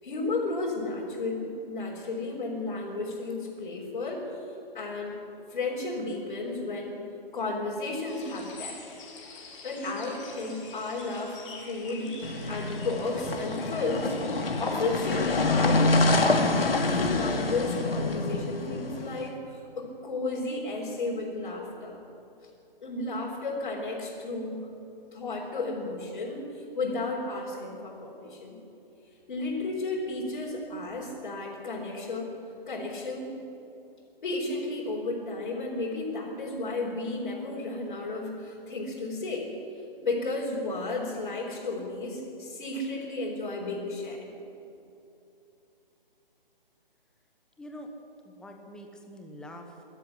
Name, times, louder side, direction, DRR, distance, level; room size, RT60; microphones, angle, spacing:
voice 1, 0.0-4.2 4.7-5.2 5.5-7.0 7.3-8.8 9.6-14.2 14.6-16.3 16.9-22.0 22.8-24.6 25.1-28.6 29.3-32.3 32.7-33.3 34.2-39.5 40.0-44.3, left 2 dB, 55° left, -5 dB, 4.7 m, -33 dB
sound 1, 8.1-17.9, left 4 dB, 35° left, 3.4 m, -47 dB
sound 2, 12.2-19.2, left 2 dB, 80° left, 2.4 m, -26 dB
voice 2, 47.6-47.9 48.2-49.8, equal, 5° left, 3 dB, 1.0 m, -45 dB
20.0 x 13.0 x 9.9 m, 2.8 s
figure-of-eight pair, 150°, 29 cm